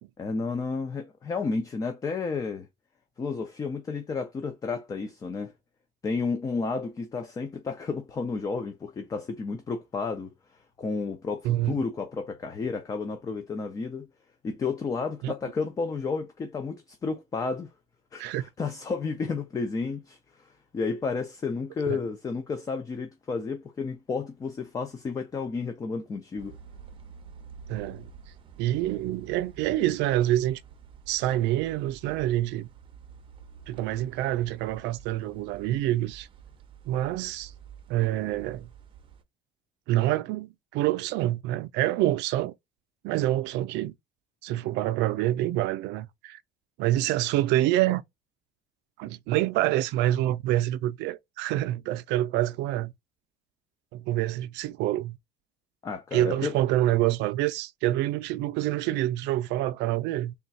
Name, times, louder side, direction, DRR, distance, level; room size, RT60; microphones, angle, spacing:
voice 1, 0.2-2.7 3.2-5.5 6.0-14.1 14.4-17.7 18.1-26.6 55.8-56.5, left 4 dB, 20° left, 0.4 m, -32 dB
voice 2, 11.4-11.8 15.2-15.3 18.2-18.4 21.9-22.0 27.7-28.1 28.6-30.6 31.1-32.7 33.7-36.3 36.9-37.5 37.9-38.7 39.9-42.6 43.0-43.9 44.4-46.4 46.8-48.0 49.0-52.9 53.9-55.2 56.1-60.3, right 14 dB, 90° right, 0.5 m, -27 dB
sound 1, 26.4-39.2, right 7 dB, 30° right, 0.6 m, -49 dB
3.5 x 2.3 x 4.0 m
cardioid pair, 170°, 18 cm